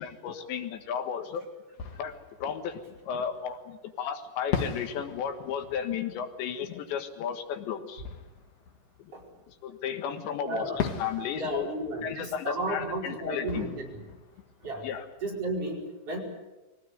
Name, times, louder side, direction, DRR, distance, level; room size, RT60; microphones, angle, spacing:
voice 1, 0.0-1.5 2.0-8.0 9.6-11.7 12.0-13.7 14.8-15.1, left 8 dB, 80° left, 7 dB, 3.8 m, -34 dB
Fireworks, 1.1-1.2 1.7-3.7 4.5-9.9 10.8-15.5, left 6 dB, 55° left, 2.0 m, -40 dB
voice 2, 10.4-10.8 11.3-14.0 14.6-14.9 15.2-16.2, right 1 dB, 35° right, -2 dB, 5.6 m, -33 dB
23.0 x 18.0 x 9.5 m, 1.1 s
omnidirectional pair, 5.1 m